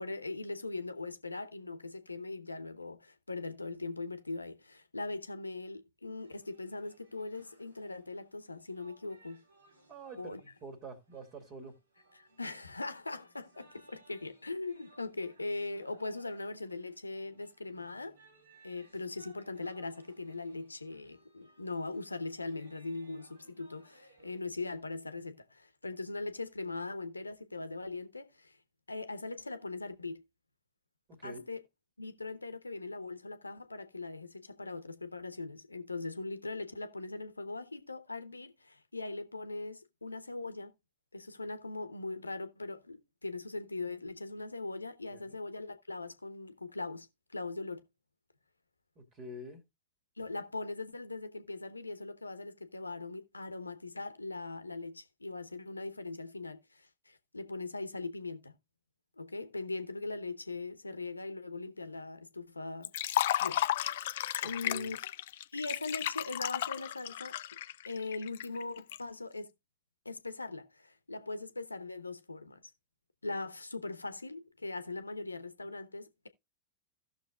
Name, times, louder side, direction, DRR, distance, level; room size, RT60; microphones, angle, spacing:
voice 1, 0.0-9.4 10.2-10.4 12.2-18.2 18.6-28.6 28.9-30.2 31.2-31.6 32.0-40.7 41.1-47.1 47.3-47.9 50.2-58.6 59.2-62.9 63.4-65.0 65.5-67.4 67.8-69.5 70.0-72.6 73.2-76.3, left 3 dB, 80° left, 0.9 m, -40 dB
sound 1, 6.2-24.4, right 3 dB, 75° right, 3.1 m, -64 dB
voice 2, 9.9-11.8 31.1-31.5 45.1-45.4 49.0-49.6 64.4-64.9, right 1 dB, 35° right, 2.1 m, -47 dB
Liquid, 62.8-69.0, left 13 dB, 55° left, 0.4 m, -34 dB
16.5 x 6.3 x 2.3 m
figure-of-eight pair, 90°, 0 cm